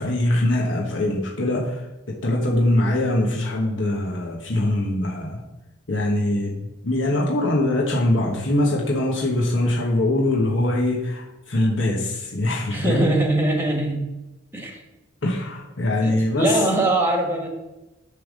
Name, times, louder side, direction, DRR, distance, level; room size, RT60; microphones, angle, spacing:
voice 1, 0.0-1.8 2.1-5.4 5.9-13.1 15.2-16.6, left 1 dB, 70° left, -2 dB, 1.3 m, -22 dB
voice 2, 12.7-14.1 14.5-14.8 16.0-17.5, right 2 dB, 10° right, 3 dB, 1.3 m, -22 dB
9.9 x 3.5 x 6.4 m, 1.0 s
head